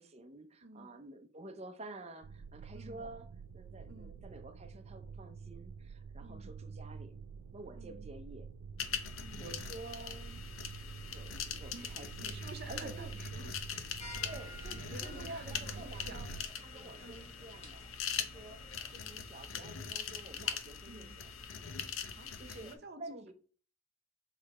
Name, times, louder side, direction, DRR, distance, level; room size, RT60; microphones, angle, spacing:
voice 1, 0.0-3.3 3.5-7.2 7.5-8.5 9.4-10.4 11.0-12.4 12.7-13.2 14.2-16.3 16.6-17.8 18.2-18.6 18.9-21.3 22.4-23.3, right 2 dB, 30° right, 0.6 m, -50 dB
voice 2, 0.6-1.0 2.7-3.1 3.9-4.2 6.2-6.5 7.7-8.1 9.2-9.5 11.7-14.2 14.7-16.4 17.0-17.3 20.8-21.2 22.0-23.3, right 2 dB, 50° right, 0.9 m, -52 dB
sound 1, 2.2-16.5, right 5 dB, 80° right, 0.3 m, -48 dB
sound 2, 8.8-22.7, left 7 dB, 75° left, 0.8 m, -42 dB
sound 3, 14.0-19.1, left 2 dB, 30° left, 1.3 m, -53 dB
6.5 x 3.2 x 4.8 m
head